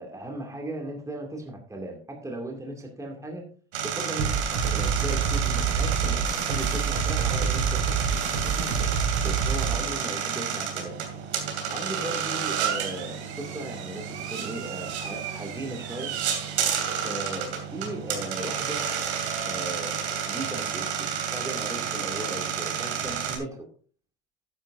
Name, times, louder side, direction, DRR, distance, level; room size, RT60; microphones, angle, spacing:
voice 1, 0.0-3.4 3.8-8.7 9.2-11.0 11.7-16.2 17.0-18.9 19.4-23.7, right 1 dB, 10° right, 1 dB, 2.4 m, -37 dB
sound 1, 3.7-23.4, right 8 dB, 85° right, 2.9 m, -30 dB
sound 2, 4.2-9.8, right 6 dB, 70° right, 4.6 m, -27 dB
12.5 x 10.0 x 2.6 m, 0.41 s
supercardioid pair, 95°, 32 cm